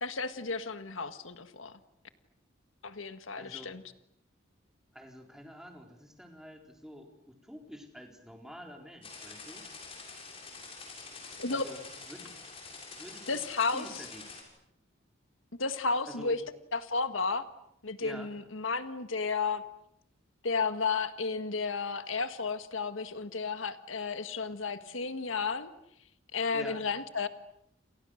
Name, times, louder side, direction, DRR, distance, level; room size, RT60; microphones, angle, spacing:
voice 1, 0.0-1.8 2.8-3.8 11.4-11.6 13.3-13.9 15.6-16.4 16.7-17.5 17.8-19.6 20.4-25.7 26.3-27.3, left 4 dB, 85° left, 10 dB, 1.7 m, -32 dB
voice 2, 3.4-3.7 4.9-9.7 11.5-11.8 12.1-12.4 13.0-13.3 13.7-14.3 16.1-16.4 18.0-18.3 26.5-26.8, equal, 5° right, 2 dB, 4.3 m, -48 dB
sound 1, 9.0-14.4, left 4 dB, 30° left, 7.1 m, -46 dB
29.0 x 29.0 x 6.5 m, 0.74 s
head